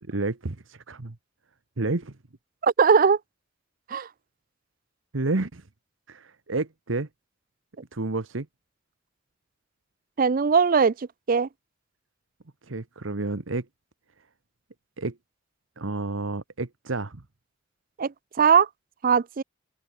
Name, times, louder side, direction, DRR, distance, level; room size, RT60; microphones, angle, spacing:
voice 1, 0.0-1.2 1.8-2.2 5.1-5.7 6.1-7.1 7.9-8.5 12.6-13.7 15.0-15.2 15.8-17.2, right 2 dB, 80° right, 1.2 m, -30 dB
voice 2, 2.6-3.2 3.9-4.1 10.2-11.5 18.0-18.1 18.4-18.7 19.0-19.4, right 6 dB, 45° right, 0.5 m, -20 dB
head